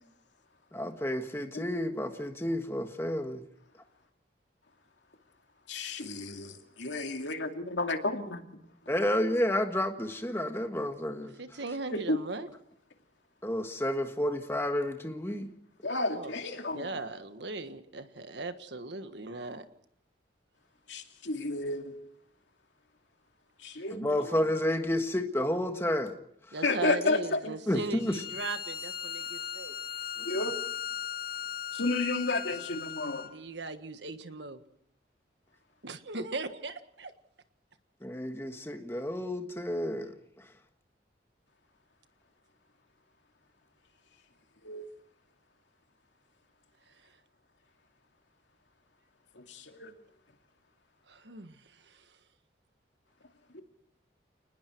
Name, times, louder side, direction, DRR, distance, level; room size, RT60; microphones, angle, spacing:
voice 1, 0.7-3.4 8.9-11.3 13.4-15.5 23.9-26.2 27.7-28.2 30.2-30.4 38.0-40.1, left 1 dB, 15° left, 1.6 m, -30 dB
voice 2, 5.7-6.5 6.8-8.4 11.9-12.2 15.8-16.9 20.9-21.9 23.6-24.3 26.6-27.5 30.2-30.5 31.7-33.3 44.6-44.9 49.4-49.9 53.5-53.6, left 2 dB, 80° left, 2.6 m, -32 dB
voice 3, 11.4-12.5 16.1-16.4 16.7-19.6 26.5-29.8 33.2-34.6 35.8-37.1 51.1-52.0, right 3 dB, 70° right, 1.5 m, -38 dB
Bowed string instrument, 28.0-33.4, left 9 dB, 50° left, 0.9 m, -38 dB
29.5 x 20.0 x 4.6 m
head